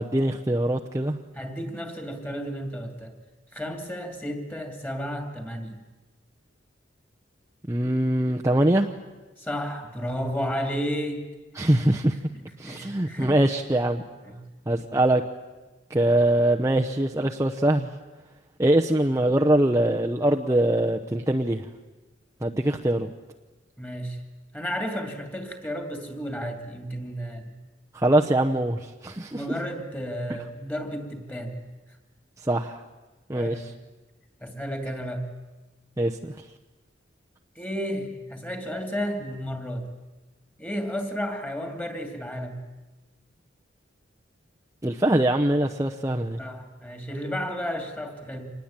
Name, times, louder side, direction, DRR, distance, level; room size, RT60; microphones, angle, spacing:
voice 1, 0.0-1.2 7.7-8.9 11.6-12.2 12.6-14.0 14.7-15.2 15.9-17.9 18.6-21.6 22.4-23.1 27.9-29.4 32.4-32.8 33.3-33.7 36.0-36.3 44.8-46.4, right 1 dB, 15° right, 1 dB, 0.8 m, -23 dB
voice 2, 1.3-3.1 3.5-5.8 9.4-11.3 12.3-13.4 14.2-14.5 23.8-24.2 24.5-27.5 29.3-31.6 33.3-33.7 34.4-35.3 37.6-39.9 40.6-42.6 46.4-48.5, equal, 10° left, 5 dB, 2.7 m, -32 dB
26.5 x 20.0 x 8.9 m, 1.2 s
head